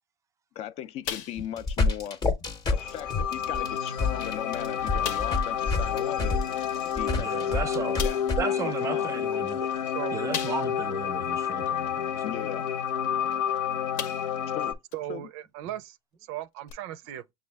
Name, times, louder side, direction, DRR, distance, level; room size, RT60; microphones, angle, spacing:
voice 1, 0.6-2.2 2.7-6.4 6.9-9.1 12.2-12.7 14.5-14.8 15.1-15.3, left 11 dB, 40° left, 0.4 m, -38 dB
sound 1, 1.0-1.7 2.0-2.2 2.8-2.9 3.7-3.8 4.2-4.3 5.0-5.5 7.1-7.2 8.0-8.4 10.3-10.9 11.4-11.5 13.3-13.5 14.0-14.5 14.9-15.0 16.7-16.8, left 9 dB, 60° left, 0.8 m, -36 dB
sound 2, 1.4-8.4, left 3 dB, 25° left, 0.8 m, -28 dB
sound 3, 2.7-14.7, left 9 dB, 85° left, 1.0 m, -30 dB
voice 2, 7.2-8.0 8.4-9.8 10.1-12.2, right 6 dB, 20° right, 0.5 m, -35 dB
voice 3, 14.9-16.0 16.3-17.2, right 12 dB, 70° right, 0.5 m, -36 dB
6.2 x 2.3 x 3.4 m
supercardioid pair, 145°, 15 cm